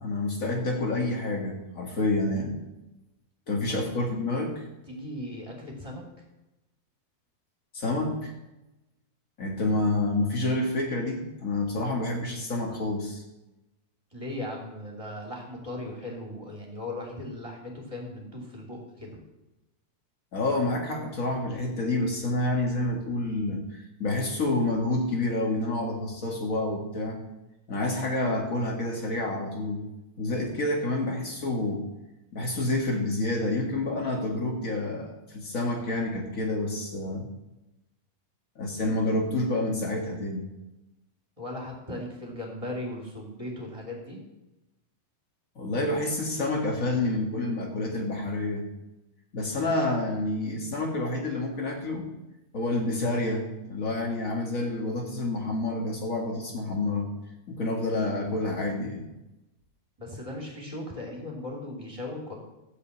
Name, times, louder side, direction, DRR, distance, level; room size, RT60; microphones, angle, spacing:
voice 1, 0.0-2.6 3.5-4.7 7.7-8.3 9.4-13.2 20.3-27.2 27.7-29.9 30.2-31.8 32.3-37.3 38.5-40.4 45.5-48.7 49.3-52.1 52.5-57.1 57.5-59.0, left 2 dB, 85° left, 0 dB, 0.7 m, -28 dB
voice 2, 4.9-6.0 14.1-19.2 41.4-44.2 60.0-62.3, left 1 dB, 10° right, -2 dB, 2.5 m, -38 dB
14.5 x 5.3 x 8.2 m, 0.97 s
omnidirectional pair, 4.3 m